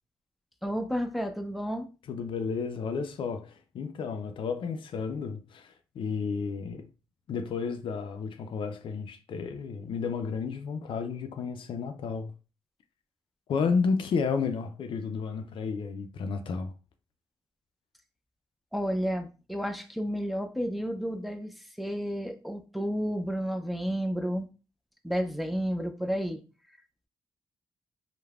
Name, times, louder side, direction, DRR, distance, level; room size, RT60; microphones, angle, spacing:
voice 1, 0.6-1.9 18.7-21.5 21.8-24.5 25.0-26.4, equal, ahead, 0.5 m, -31 dB
voice 2, 2.1-6.9 7.3-12.3 13.5-16.7, left 5 dB, 65° left, 0.4 m, -32 dB
3.1 x 2.1 x 2.3 m
cardioid pair, 75°, 9 cm